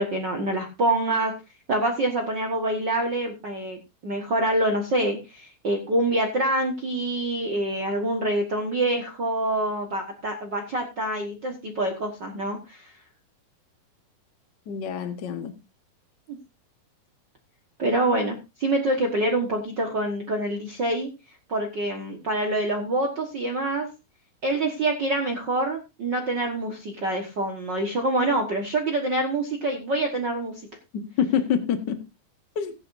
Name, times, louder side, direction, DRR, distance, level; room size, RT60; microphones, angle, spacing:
voice 1, 0.0-1.4 1.7-12.9 17.8-21.1 21.5-23.9 24.4-30.6, right 1 dB, 55° right, 2 dB, 1.2 m, -26 dB
voice 2, 14.7-15.5 30.9-32.0 32.5-32.7, left 8 dB, 65° left, 7 dB, 1.0 m, -26 dB
16.5 x 10.5 x 2.6 m, 0.26 s
omnidirectional pair, 4.2 m